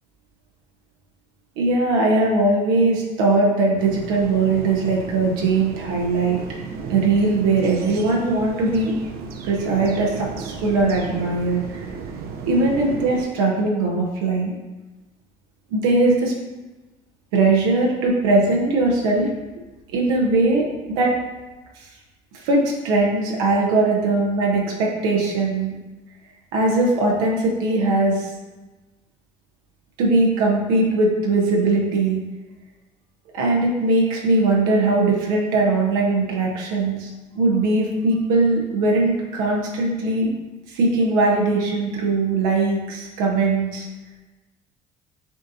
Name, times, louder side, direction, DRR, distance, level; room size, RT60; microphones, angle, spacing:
voice 1, 1.6-6.4 6.9-8.9 9.4-11.8 12.5-14.5 15.7-16.3 17.3-19.3 19.9-20.6 20.9-21.1 22.4-25.7 26.5-28.3 30.0-32.2 33.3-37.1 37.3-40.3 40.7-43.9, right 2 dB, 85° right, -2 dB, 0.9 m, -20 dB
sound 1, 3.8-13.2, right 5 dB, 65° right, 0.6 m, -34 dB
7.4 x 2.7 x 2.6 m, 1.2 s
hypercardioid pair, 65°, 18 cm